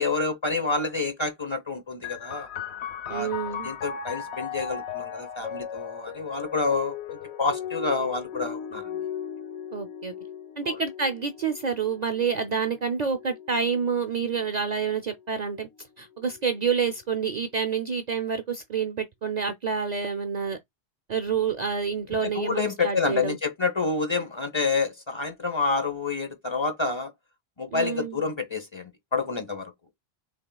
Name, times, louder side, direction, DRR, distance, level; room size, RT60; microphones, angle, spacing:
voice 1, 0.0-2.5 3.1-8.8 10.6-10.8 22.2-27.1 27.6-29.7, left 4 dB, 30° left, 0.9 m, -28 dB
sound 1, 2.0-15.3 16.1-16.9, left 8 dB, 85° left, 1.0 m, -38 dB
voice 2, 3.1-3.7 9.7-10.1 10.6-15.7 16.0-20.6 21.1-23.4 27.7-28.2, right 6 dB, 50° right, 0.6 m, -28 dB
6.1 x 3.6 x 2.3 m
omnidirectional pair, 1.1 m